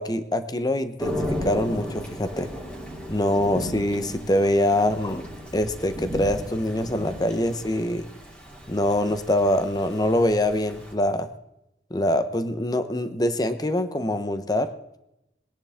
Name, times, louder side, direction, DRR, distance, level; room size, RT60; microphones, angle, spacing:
voice 1, 0.0-2.5 3.1-5.3 5.5-8.1 8.7-11.3 11.9-14.7, left 1 dB, 20° left, 10 dB, 1.0 m, -24 dB
Thunder / Rain, 1.0-10.9, equal, 5° left, 3.3 m, -35 dB
22.0 x 10.5 x 3.6 m, 0.87 s
head